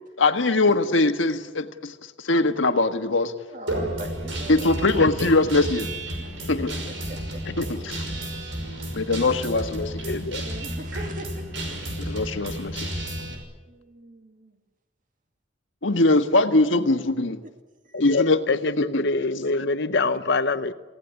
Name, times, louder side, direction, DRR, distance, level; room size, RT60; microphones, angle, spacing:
voice 1, 0.2-3.3 4.5-5.9 6.5-6.8 7.6-8.0 9.0-9.9 12.0-12.9 15.8-17.4 18.0-18.4 18.8-19.0 19.5-19.7, left 2 dB, 90° left, 7 dB, 1.6 m, -22 dB
voice 2, 3.5-4.7 6.9-7.4 9.5-9.6 10.4-11.4 12.0-12.1 13.7-14.6 17.8-18.0, equal, 45° right, 6 dB, 2.1 m, -41 dB
Guitar, 3.7-13.4, right 1 dB, 75° right, 5.8 m, -32 dB
voice 3, 10.1-10.4 17.9-20.7, left 3 dB, 65° left, 11 dB, 1.1 m, -25 dB
28.0 x 17.0 x 8.3 m, 1.3 s
head